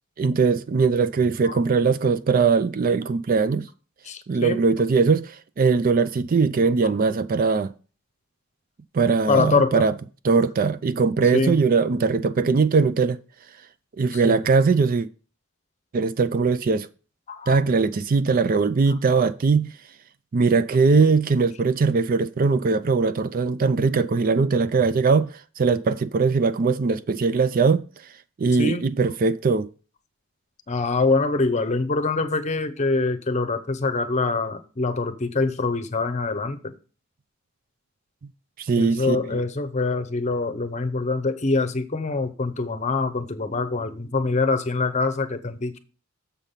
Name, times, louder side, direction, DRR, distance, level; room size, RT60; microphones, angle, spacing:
voice 1, 0.2-3.7 4.3-7.7 8.9-9.9 10.2-13.2 14.0-15.1 15.9-16.9 17.5-19.7 20.3-27.8 28.4-29.7 38.6-39.4, right 4 dB, 45° right, 0.4 m, -21 dB
voice 2, 4.1-4.6 9.3-9.8 11.3-11.6 14.1-14.5 17.3-17.6 28.6-28.8 30.7-36.7 38.8-45.8, left 3 dB, 35° left, 0.7 m, -24 dB
7.2 x 5.2 x 5.7 m
head